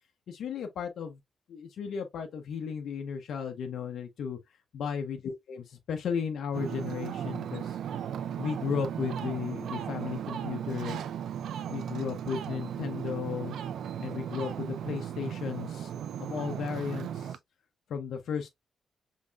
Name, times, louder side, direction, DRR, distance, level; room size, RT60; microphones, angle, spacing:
voice 1, 0.3-1.2 1.5-4.4 4.7-7.8 8.4-11.0 11.7-13.6 14.0-15.9 16.2-17.4 17.9-18.5, left 6 dB, 70° left, 0.7 m, -35 dB
Ocean, 6.5-17.4, right 9 dB, 80° right, 0.5 m, -36 dB
5.5 x 3.6 x 2.3 m
wide cardioid pair, 175°, 0 cm